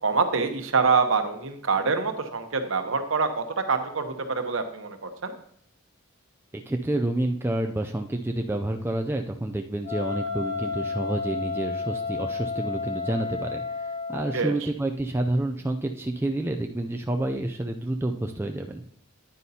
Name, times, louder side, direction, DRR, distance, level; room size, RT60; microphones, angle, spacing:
voice 1, 0.0-5.3 14.3-14.7, right 4 dB, 70° right, 7 dB, 1.0 m, -25 dB
voice 2, 6.7-13.6 14.1-18.8, right 1 dB, 10° right, 4 dB, 0.4 m, -29 dB
Wind instrument woodwind instrument, 9.8-14.5, left 4 dB, 50° left, 2.6 m, -31 dB
9.8 x 9.5 x 2.8 m, 0.62 s
head